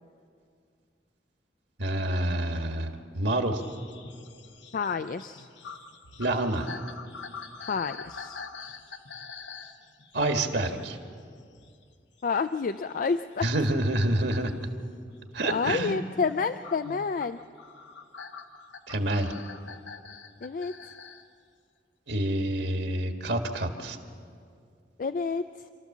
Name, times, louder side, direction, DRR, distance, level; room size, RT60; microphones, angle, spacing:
voice 1, 1.8-3.6 6.2-6.7 10.1-11.0 13.4-14.7 15.3-15.9 16.8-16.9 18.9-19.3 22.1-24.0, right 1 dB, 65° right, 5 dB, 1.7 m, -27 dB
sound 1, 3.5-11.8 12.2-14.5 15.0-15.5 16.6-21.3 22.6-22.7, left 5 dB, 80° left, 1.2 m, -45 dB
voice 2, 4.7-5.5 7.7-8.4 12.2-13.4 15.4-17.4 20.4-20.8 25.0-25.4, left 5 dB, 45° left, 10 dB, 0.4 m, -29 dB
27.0 x 13.5 x 7.3 m, 2.2 s
head